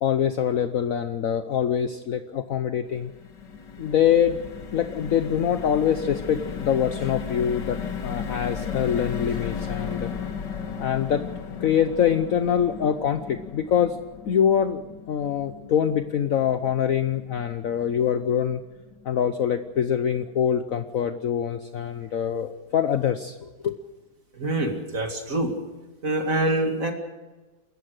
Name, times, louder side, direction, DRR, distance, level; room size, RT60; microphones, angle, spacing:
voice 1, 0.0-3.1 3.8-4.4 4.7-10.1 10.8-11.2 11.6-14.0 14.2-14.8 15.1-18.6 19.0-23.8, left 9 dB, 55° left, 9 dB, 1.1 m, -24 dB
sound 1, 2.9-19.2 19.6-19.7 20.0-20.2, left 6 dB, 75° left, 2.2 m, -36 dB
voice 2, 24.3-25.5 26.0-26.9, right 1 dB, 50° right, 4 dB, 2.7 m, -25 dB
28.0 x 14.5 x 6.5 m, 1.2 s
omnidirectional pair, 1.9 m